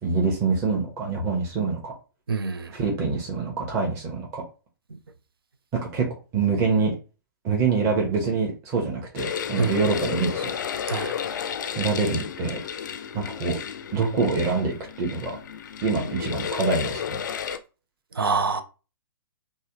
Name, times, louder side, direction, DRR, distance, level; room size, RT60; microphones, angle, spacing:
voice 1, 0.0-1.9 2.7-4.4 5.9-6.1 6.3-6.9 7.4-10.5 11.8-12.6 13.1-13.6 13.9-15.4 15.8-17.2, right 4 dB, 25° right, 0.8 m, -25 dB
voice 2, 2.3-2.7 9.6-9.7 10.9-11.2 18.2-18.6, right 4 dB, 75° right, 0.5 m, -25 dB
sound 1, 9.2-17.6, left 8 dB, 50° left, 0.4 m, -32 dB
3.3 x 2.1 x 2.9 m
figure-of-eight pair, 120°, 12 cm